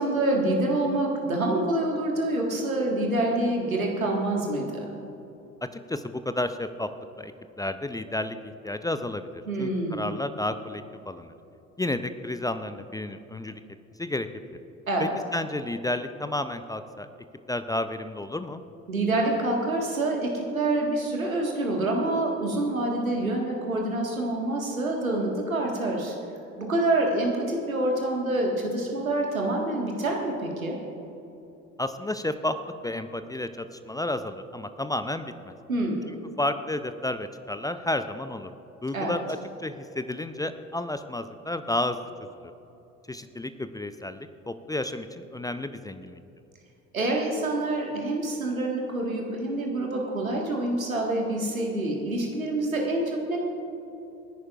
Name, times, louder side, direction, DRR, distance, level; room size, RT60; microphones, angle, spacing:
voice 1, 0.0-4.9 9.4-10.0 14.9-15.1 18.9-26.1 26.6-30.8 35.7-36.1 38.9-39.1 46.9-53.4, right 2 dB, 85° right, 0 dB, 1.7 m, -27 dB
voice 2, 5.9-6.9 7.2-7.3 7.6-11.3 11.8-13.6 14.0-14.3 15.0-17.1 17.5-18.6 31.8-35.5 36.1-38.5 38.8-42.1 43.1-46.2, left 1 dB, 10° left, 10 dB, 0.5 m, -31 dB
28.0 x 11.0 x 2.4 m, 2.9 s
figure-of-eight pair, 55°, 40 cm